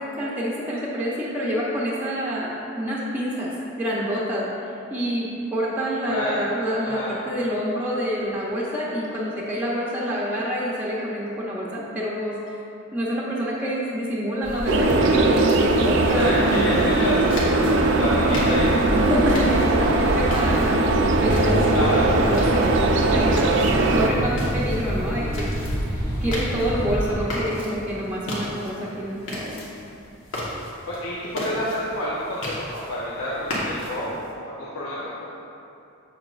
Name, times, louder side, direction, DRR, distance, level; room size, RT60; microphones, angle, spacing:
voice 1, 0.1-3.5 3.8-4.5 4.9-12.6 12.9-16.6 18.9-22.8 23.1-23.6 23.9-25.5 26.2-29.6, equal, 10° right, -7 dB, 0.8 m, -27 dB
voice 2, 6.1-6.4 6.8-7.1 16.1-19.0 21.7-22.1 30.9-35.3, left 1 dB, 75° left, -7 dB, 0.9 m, -29 dB
sound 1, 14.4-27.2, equal, 15° left, 1.5 m, -29 dB
sound 2, 14.7-24.1, right 2 dB, 55° right, 0.5 m, -20 dB
sound 3, 16.5-34.3, left 1 dB, 55° left, 1.4 m, -36 dB
7.7 x 7.0 x 2.5 m, 2.7 s
head